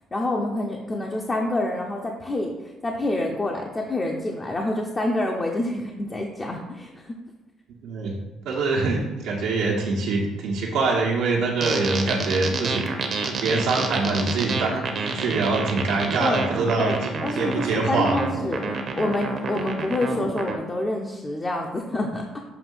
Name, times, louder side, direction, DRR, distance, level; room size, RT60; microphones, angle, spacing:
voice 1, 0.1-2.5 2.8-7.2 16.2-16.5 16.8-18.6 19.0-22.4, left 1 dB, 20° left, 0 dB, 0.6 m, -27 dB
voice 2, 7.8-8.1 8.4-12.8 13.2-18.2, right 3 dB, 85° right, -3 dB, 1.2 m, -24 dB
sound 1, 11.6-20.6, right 4 dB, 45° right, 0.8 m, -29 dB
6.8 x 2.7 x 5.4 m, 1.2 s
cardioid pair, 125°, 0 cm